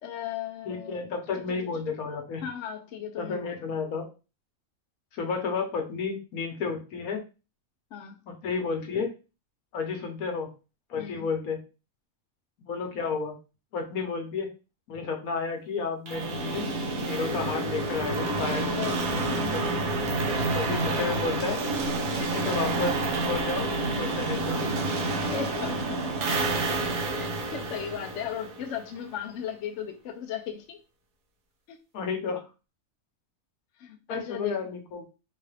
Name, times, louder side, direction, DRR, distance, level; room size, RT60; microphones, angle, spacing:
voice 1, 0.0-1.1 1.4-1.7 2.4-3.7 7.9-8.2 11.0-11.3 18.8-19.0 19.3-19.7 25.2-26.4 26.6-26.8 27.2-30.8 31.7-31.8 33.8-34.8, left 9 dB, 65° left, 5 dB, 0.8 m, -37 dB
voice 2, 0.6-2.4 3.2-4.1 5.1-7.2 8.3-9.1 9.7-10.5 10.9-11.6 12.7-13.4 13.7-14.5 14.9-16.6 17.0-18.8 19.5-19.6 20.5-21.6 22.1-23.7 24.0-24.6 31.9-32.4 34.1-35.0, left 5 dB, 85° left, 3 dB, 1.3 m, -31 dB
sound 1, 16.1-28.9, right 2 dB, 85° right, 1.2 m, -29 dB
3.8 x 2.4 x 3.2 m, 0.31 s
omnidirectional pair, 1.5 m